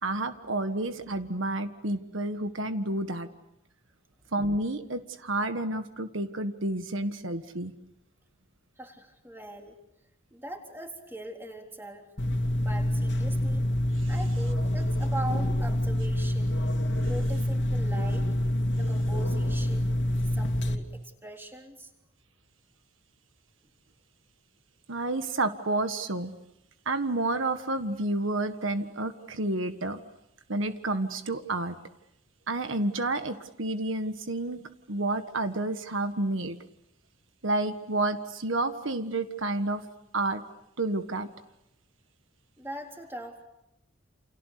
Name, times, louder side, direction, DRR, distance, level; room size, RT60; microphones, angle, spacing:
voice 1, 0.0-3.3 4.3-7.7 14.0-14.1 24.9-26.3 26.8-30.0 30.5-31.7 32.5-36.6 37.4-39.8 40.1-40.4 40.8-41.3, right 2 dB, 75° right, 8 dB, 1.5 m, -30 dB
voice 2, 8.8-9.8 10.3-12.1 12.6-13.7 14.1-16.6 17.0-18.3 18.8-21.9 42.6-43.5, right 1 dB, 10° right, 2 dB, 3.7 m, -41 dB
sound 1, 12.2-20.8, left 1 dB, 60° left, 2.8 m, -27 dB
29.5 x 29.5 x 6.7 m, 0.83 s
head